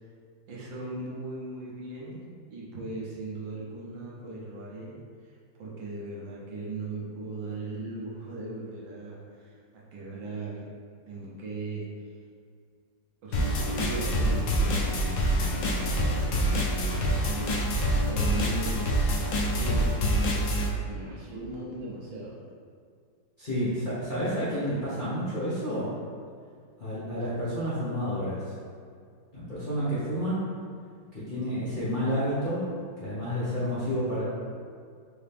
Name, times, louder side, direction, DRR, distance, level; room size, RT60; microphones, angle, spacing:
voice 1, 0.5-4.9 5.2-10.7 11.1-11.9 13.2-19.2 19.5-20.3 20.8-22.4, right 2 dB, 75° right, -5 dB, 1.6 m, -38 dB
sound 1, 13.3-20.7, equal, 80° left, 0.7 m, -26 dB
voice 2, 23.4-25.9 26.8-28.4 29.3-30.5 31.1-32.7 33.0-34.2, equal, 35° left, -12 dB, 0.8 m, -30 dB
4.8 x 2.8 x 3.4 m, 2.2 s
omnidirectional pair, 2.1 m